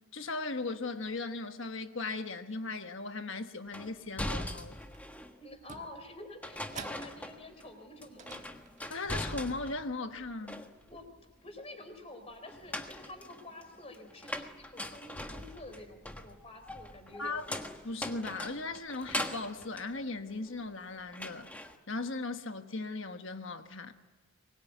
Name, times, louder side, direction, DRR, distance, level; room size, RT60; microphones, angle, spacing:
voice 1, 0.1-4.8 8.9-10.7 17.2-17.4 17.8-21.5 21.9-23.9, left 3 dB, 60° left, 1.4 m, -38 dB
sound 1, 3.7-5.4 6.4-7.7 8.0-9.9 10.2-11.1 12.4-20.8 21.1-21.8, left 1 dB, 5° left, 1.3 m, -41 dB
sound 2, 4.8-5.0 5.5-7.6 8.1-9.4, right 5 dB, 35° right, 1.4 m, -50 dB
voice 2, 5.4-8.5 10.9-11.1 11.4-17.4, left 1 dB, 25° left, 3.9 m, -49 dB
24.0 x 21.0 x 9.2 m
head